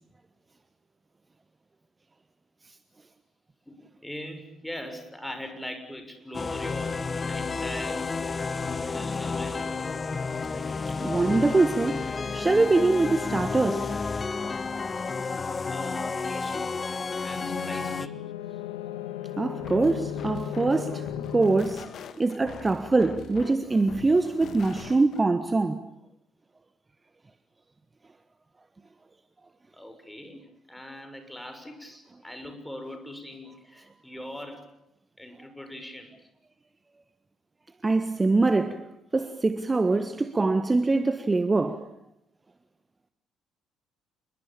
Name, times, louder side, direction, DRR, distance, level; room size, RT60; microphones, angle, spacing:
voice 1, 4.0-8.1 8.9-9.7 15.7-16.7 17.2-18.1 29.7-34.7 35.2-36.1, left 1 dB, 5° left, 6.5 m, -41 dB
sound 1, 6.3-18.1, left 4 dB, 30° left, 1.4 m, -31 dB
voice 2, 10.9-12.0 12.3-13.9 19.4-21.9 22.2-25.9 37.8-41.9, right 3 dB, 25° right, 1.5 m, -24 dB
sound 2, 17.2-21.6, left 10 dB, 75° left, 1.8 m, -36 dB
sound 3, 19.6-25.2, left 7 dB, 50° left, 1.9 m, -43 dB
28.5 x 22.0 x 8.8 m
figure-of-eight pair, 45°, 0 cm